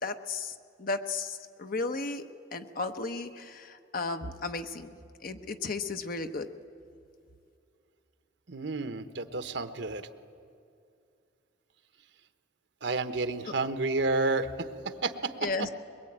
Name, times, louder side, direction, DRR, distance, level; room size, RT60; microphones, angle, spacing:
voice 1, 0.0-2.2 2.5-4.9 5.2-6.5 15.4-15.7, left 3 dB, 50° left, 8 dB, 1.0 m, -34 dB
voice 2, 8.5-10.0 12.8-14.7 15.0-15.3, right 3 dB, 75° right, 9 dB, 1.1 m, -30 dB
22.5 x 21.5 x 8.8 m, 2.5 s
head